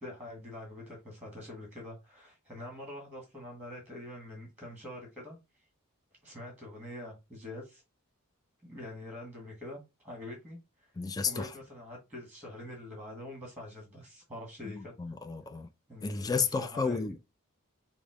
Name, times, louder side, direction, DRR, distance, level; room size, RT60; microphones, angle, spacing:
voice 1, 0.0-5.4 6.2-7.8 8.6-10.6 11.2-15.1 15.9-17.1, left 1 dB, 5° right, 1.6 m, -45 dB
voice 2, 11.0-11.5 14.6-15.7 16.0-17.2, left 5 dB, 15° left, 0.3 m, -32 dB
5.2 x 2.1 x 4.8 m
head